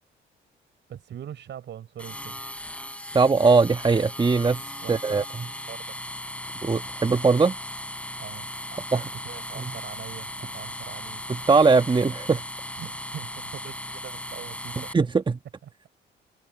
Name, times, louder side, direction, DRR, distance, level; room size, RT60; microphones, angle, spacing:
voice 1, 0.9-2.4 4.8-5.3 5.7-5.8 8.2-11.2 12.8-14.9 15.6-15.9, right 10 dB, 65° right, 4.8 m, -42 dB
sound 1, 2.0-14.9, left 1 dB, 5° left, 3.6 m, -37 dB
voice 2, 3.1-4.6 4.9-5.2 6.6-7.6 8.9-9.0 9.5-9.6 11.5-12.4 14.9-15.4, right 4 dB, 25° right, 1.3 m, -20 dB
cardioid pair, 90°, 20 cm